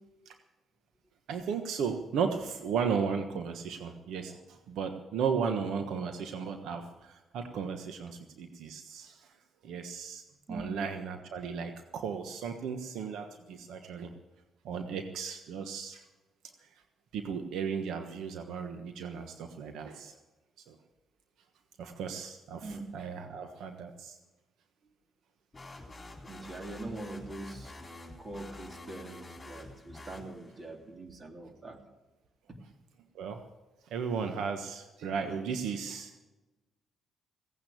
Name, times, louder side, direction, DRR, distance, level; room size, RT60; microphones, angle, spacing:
voice 1, 1.3-9.3 9.6-10.2 10.5-14.1 14.6-16.1 17.1-20.1 20.7-20.8 21.8-24.2 33.1-33.4 33.9-36.2, right 6 dB, 80° right, 6 dB, 1.3 m, -35 dB
sound 1, 25.5-30.7, left 2 dB, 20° left, 3.8 m, -48 dB
voice 2, 26.3-27.8 28.2-31.8 32.5-32.6, right 2 dB, 35° right, 3 dB, 3.3 m, -43 dB
17.0 x 9.2 x 8.7 m, 1.1 s
cardioid pair, 90°, 0 cm